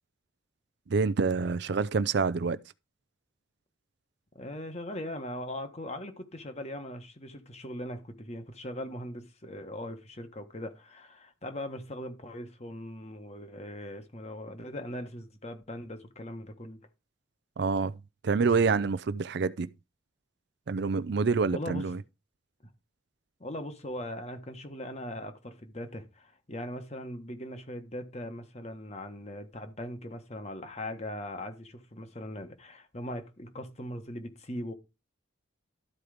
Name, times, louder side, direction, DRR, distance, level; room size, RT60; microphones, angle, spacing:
voice 1, 0.9-2.6 17.6-18.0 18.2-19.7 20.7-22.0, right 4 dB, 55° right, 0.4 m, -27 dB
voice 2, 4.3-16.8 21.5-21.8 23.4-34.7, left 1 dB, 35° left, 1.3 m, -40 dB
12.5 x 4.7 x 5.0 m
head